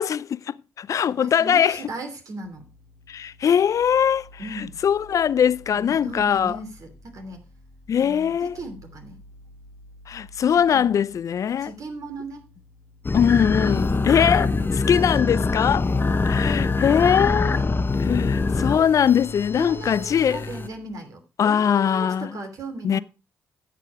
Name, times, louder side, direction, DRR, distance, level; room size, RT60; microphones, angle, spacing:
voice 1, 0.0-1.8 3.1-4.3 4.8-6.6 7.9-8.6 10.1-11.7 13.1-14.5 14.9-15.9 16.3-17.6 18.0-20.4 21.4-22.3 22.8-23.0, left 8 dB, 55° left, 0.5 m, -21 dB
voice 2, 1.1-2.6 4.4-4.8 5.7-7.4 8.0-9.2 10.5-10.9 11.6-12.4 13.9-14.6 17.1-17.8 19.5-23.0, right 2 dB, 60° right, 2.9 m, -37 dB
sound 1, 2.4-20.9, equal, 85° right, 7.4 m, -50 dB
sound 2, 13.0-20.7, left 3 dB, 35° left, 1.1 m, -24 dB
10.5 x 7.6 x 4.8 m
hypercardioid pair, 45°, 7 cm